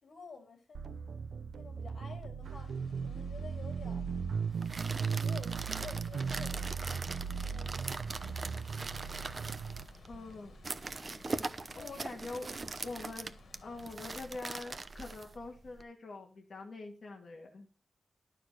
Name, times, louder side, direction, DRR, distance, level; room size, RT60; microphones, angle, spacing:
voice 1, 0.0-1.3 1.5-2.8 3.0-4.1 5.2-7.1 7.5-7.9 11.7-11.9, left 4 dB, 65° left, 3.5 m, -51 dB
sound 1, 0.7-9.8, right 6 dB, 90° right, 0.6 m, -37 dB
sound 2, 2.4-14.3, left 5 dB, 85° left, 2.2 m, -59 dB
sound 3, 4.5-15.8, right 3 dB, 35° right, 0.9 m, -42 dB
voice 2, 10.1-10.5 11.7-13.3 13.6-17.7, left 3 dB, 45° left, 2.4 m, -44 dB
12.0 x 6.6 x 4.4 m
wide cardioid pair, 135°, 0 cm